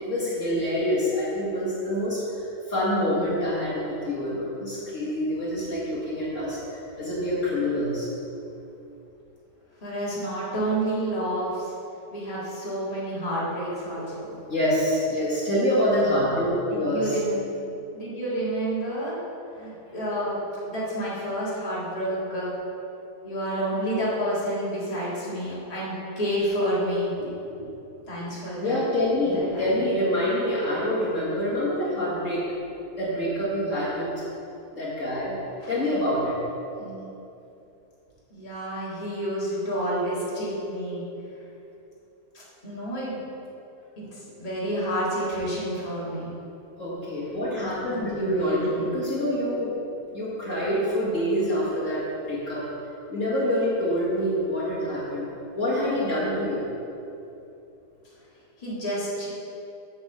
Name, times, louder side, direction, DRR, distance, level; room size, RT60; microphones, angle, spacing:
voice 1, 0.0-8.1 14.5-17.1 28.6-32.5 33.0-34.1 34.7-35.4 35.7-36.3 46.8-49.8 50.1-52.7 53.1-55.3 55.5-56.6, left 1 dB, 50° left, -8 dB, 2.0 m, -26 dB
voice 2, 9.8-11.7 12.1-14.4 16.6-17.4 17.9-19.2 19.5-20.4 20.7-22.5 23.2-27.3 27.6-27.7 28.1-28.8 29.2-29.8 35.6-35.7 36.8-37.0 38.3-41.0 42.3-43.2 44.0-46.3 47.9-48.9 58.6-59.3, right 1 dB, 25° left, -8 dB, 2.0 m, -29 dB
8.6 x 4.4 x 6.6 m, 2.8 s
omnidirectional pair, 1.7 m